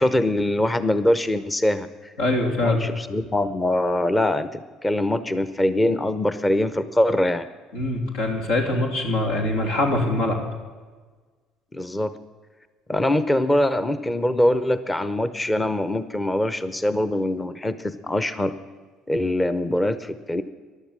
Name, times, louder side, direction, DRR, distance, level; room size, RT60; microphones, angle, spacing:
voice 1, 0.0-2.1 2.6-7.4 11.7-12.2 12.9-18.5 19.1-20.4, left 1 dB, 15° left, 13 dB, 0.8 m, -23 dB
voice 2, 2.2-2.8 7.7-10.4, left 2 dB, 90° left, 1 dB, 3.1 m, -23 dB
14.5 x 11.5 x 7.5 m, 1.4 s
supercardioid pair, 85°, 0 cm